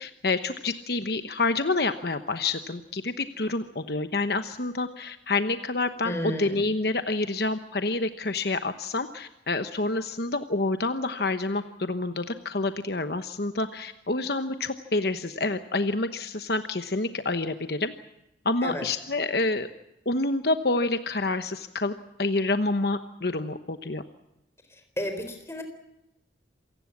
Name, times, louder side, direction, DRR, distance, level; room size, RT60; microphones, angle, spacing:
voice 1, 0.0-17.9 18.4-19.7 20.1-21.9 22.2-24.0, left 2 dB, 55° left, 9 dB, 1.1 m, -28 dB
voice 2, 6.0-6.6 18.6-18.9 24.7-25.6, equal, 15° left, 7 dB, 4.0 m, -32 dB
27.5 x 18.0 x 7.3 m, 0.92 s
head